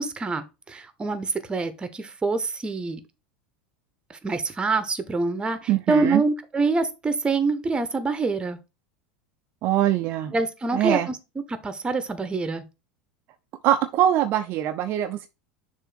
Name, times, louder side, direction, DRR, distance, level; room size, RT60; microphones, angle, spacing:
voice 1, 0.0-3.0 4.1-8.6 10.3-11.2 11.5-12.6, right 3 dB, 20° right, 1.0 m, -26 dB
voice 2, 5.7-6.2 9.6-10.3 10.7-11.1 13.6-15.3, right 12 dB, 50° right, 0.5 m, -22 dB
6.7 x 2.8 x 5.7 m
hypercardioid pair, 85°, 5 cm